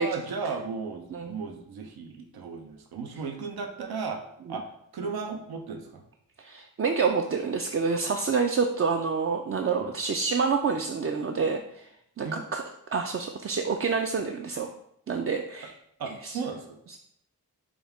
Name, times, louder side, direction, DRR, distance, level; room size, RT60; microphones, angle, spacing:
voice 1, 0.0-4.2 4.5-4.6 4.9-6.0 9.8-9.9 12.2-12.4 16.0-16.8, right 5 dB, 80° right, 4 dB, 0.6 m, -35 dB
voice 2, 6.4-11.9 12.2-12.6 12.9-14.7 15.1-15.7 16.2-16.4 16.9-17.0, right 5 dB, 40° right, 4 dB, 0.4 m, -28 dB
5.1 x 2.3 x 3.5 m, 0.74 s
cardioid pair, 40°, 37 cm